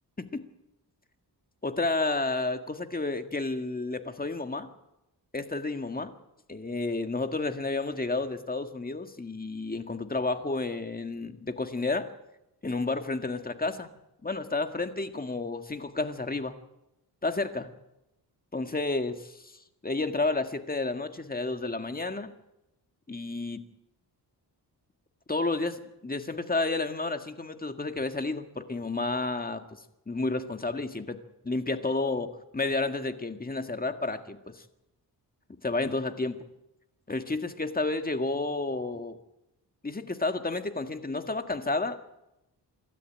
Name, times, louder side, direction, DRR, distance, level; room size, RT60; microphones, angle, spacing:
voice 1, 1.6-4.7 5.3-6.1 6.5-12.1 12.6-13.9 14.2-16.6 17.2-17.7 18.5-19.6 19.8-22.3 23.1-23.6 25.3-29.8 30.1-31.2 31.4-34.6 35.6-36.4 37.1-39.2 39.8-42.1, left 3 dB, 20° left, 7 dB, 1.8 m, -31 dB
26.5 x 13.0 x 8.8 m, 0.92 s
cardioid pair, 85°, 41 cm